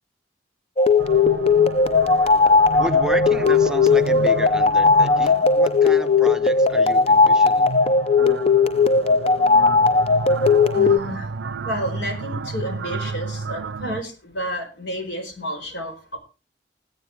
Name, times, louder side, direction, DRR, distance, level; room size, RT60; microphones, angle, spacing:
sound 1, 0.8-11.0, left 4 dB, 35° left, 0.5 m, -17 dB
sound 2, 1.0-14.0, right 4 dB, 90° right, 0.5 m, -32 dB
voice 1, 2.8-7.7, right 1 dB, 5° right, 7 dB, 0.8 m, -32 dB
voice 2, 10.6-11.3 11.6-16.2, equal, 80° left, 5 dB, 4.2 m, -31 dB
19.0 x 9.0 x 3.5 m, 0.31 s
head